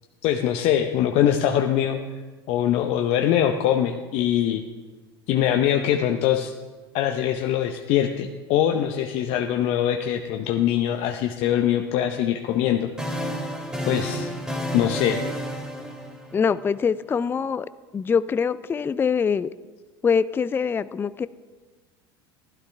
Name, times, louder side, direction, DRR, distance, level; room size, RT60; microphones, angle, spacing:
voice 1, 0.2-2.0 2.5-4.6 5.3-6.5 6.9-13.1 13.8-14.3 14.7-15.2, left 10 dB, 55° left, 5 dB, 0.7 m, -23 dB
sound 1, 12.5-16.8, equal, 5° right, 2.2 m, -31 dB
voice 2, 16.3-17.7 17.9-19.5 20.0-21.3, left 6 dB, 15° left, 16 dB, 0.3 m, -23 dB
15.5 x 11.5 x 3.4 m, 1.3 s
hypercardioid pair, 75°, 13 cm